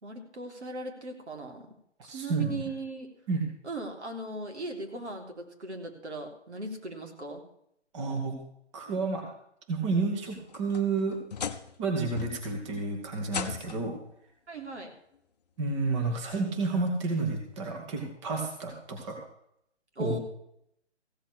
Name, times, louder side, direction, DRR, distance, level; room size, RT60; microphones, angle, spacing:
voice 1, 0.0-1.6 2.0-3.1 3.6-7.4 14.5-14.9 20.0-20.2, right 2 dB, 70° right, 2 dB, 3.7 m, -38 dB
voice 2, 2.1-2.6 3.3-3.4 7.9-8.4 8.7-9.2 9.7-11.2 11.8-14.0 15.6-19.2 20.0-20.2, right 3 dB, 25° right, 2 dB, 2.3 m, -30 dB
sound 1, 10.3-11.8 12.2-12.6 13.3-14.0 15.1-15.2 15.9-16.0 17.6-17.7, left 6 dB, 35° left, 0.9 m, -38 dB
16.0 x 7.8 x 6.2 m, 0.73 s
figure-of-eight pair, 155°, 35 cm